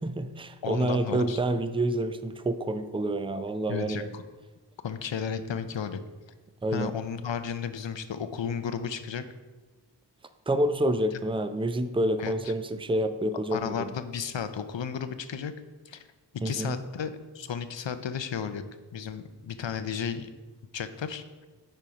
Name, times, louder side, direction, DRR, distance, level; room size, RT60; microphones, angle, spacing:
voice 1, 0.0-4.1 6.6-6.9 10.5-13.9 16.4-16.8, right 1 dB, 10° right, 10 dB, 0.5 m, -28 dB
voice 2, 0.6-1.4 3.7-4.2 4.8-6.0 6.7-9.2 12.2-12.5 13.5-15.5 15.9-16.1 16.4-18.6 18.9-20.3 20.7-21.2, left 7 dB, 85° left, 11 dB, 0.6 m, -33 dB
9.1 x 4.4 x 4.9 m, 1.3 s
wide cardioid pair, 45°, 43 cm